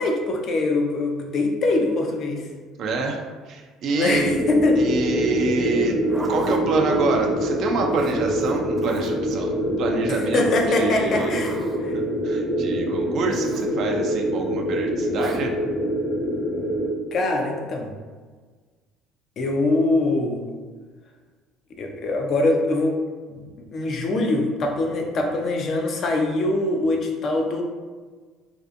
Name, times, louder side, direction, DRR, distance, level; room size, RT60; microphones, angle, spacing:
voice 1, 0.0-2.5 3.9-4.8 10.1-11.5 11.8-11.9 17.1-17.9 19.4-20.5 21.8-23.0 23.3-27.6, left 2 dB, 50° left, 2 dB, 0.4 m, -23 dB
voice 2, 2.8-4.5 4.8-6.0 6.3-11.4 11.9-15.5, right 3 dB, 60° right, 2 dB, 0.3 m, -27 dB
sound 1, 4.1-16.9, equal, 25° left, 0.8 m, -25 dB
Zipper (clothing), 5.8-6.6 7.9-9.3 10.7-11.8 13.3-13.7 15.1-15.4, right 1 dB, 20° right, 0.6 m, -38 dB
2.6 x 2.3 x 2.4 m, 1.5 s
hypercardioid pair, 65°, 0 cm